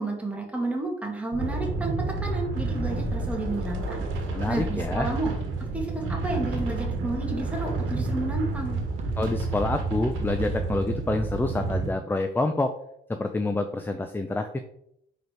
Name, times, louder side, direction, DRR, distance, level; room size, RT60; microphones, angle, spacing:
voice 1, 0.0-4.0 4.5-5.3 5.7-8.8, right 2 dB, 5° right, -1 dB, 2.0 m, -31 dB
sound 1, 1.3-11.9, right 3 dB, 85° right, 1.3 m, -30 dB
sound 2, 3.6-3.7 5.3-5.6 7.5-7.7 9.0-9.2 10.4-10.7 11.7-11.8, right 4 dB, 35° right, 1.0 m, -46 dB
voice 2, 4.3-5.1 9.2-12.7 13.1-14.6, left 2 dB, 10° left, 7 dB, 0.5 m, -27 dB
5.0 x 4.0 x 4.6 m, 0.73 s
cardioid pair, 90°, 20 cm